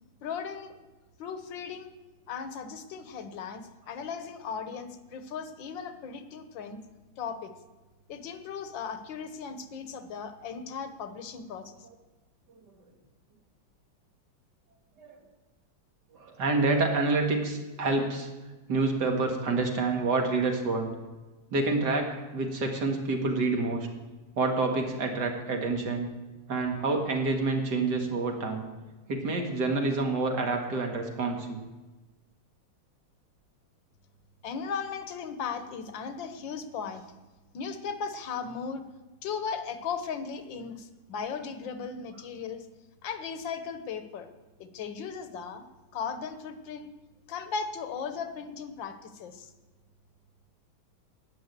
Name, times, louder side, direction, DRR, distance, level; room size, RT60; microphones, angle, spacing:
voice 1, 0.2-0.8 1.2-1.9 2.3-6.8 7.2-7.5 8.1-11.8 34.4-37.1 37.5-38.9 39.2-42.7 43.0-44.3 44.6-45.6 45.9-46.9 47.3-49.5, left 6 dB, 70° left, 10 dB, 1.6 m, -37 dB
voice 2, 16.1-18.3 18.7-20.9 21.5-23.9 24.4-26.1 26.5-28.7 29.1-31.6, right 3 dB, 55° right, 3 dB, 2.4 m, -28 dB
11.5 x 9.8 x 8.1 m, 1.2 s
omnidirectional pair, 2.2 m